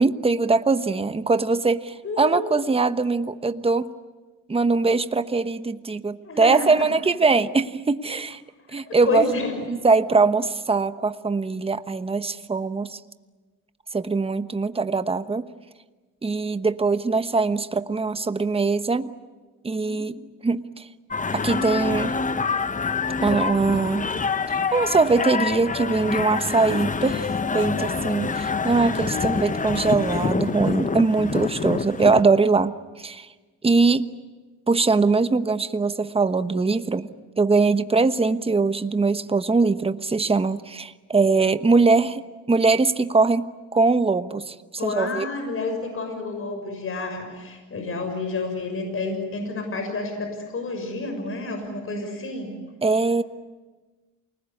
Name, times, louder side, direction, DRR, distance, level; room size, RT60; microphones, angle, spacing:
voice 1, 0.0-3.9 4.5-8.4 8.7-9.2 9.7-13.0 13.9-15.5 16.2-19.1 19.6-20.2 20.4-20.9 21.3-22.2 23.2-24.1 24.7-33.3 33.6-34.1 34.7-37.1 37.4-44.5 44.8-45.3 52.8-53.2, right 4 dB, 20° right, 11 dB, 1.1 m, -22 dB
voice 2, 2.0-2.5 6.2-6.9 8.7-9.5 19.9-20.0 44.8-52.5, left 3 dB, 45° left, 5 dB, 6.5 m, -29 dB
sound 1, 21.1-32.2, left 5 dB, 25° left, 1.0 m, -26 dB
28.5 x 20.0 x 9.7 m, 1.3 s
cardioid pair, 90°, 30 cm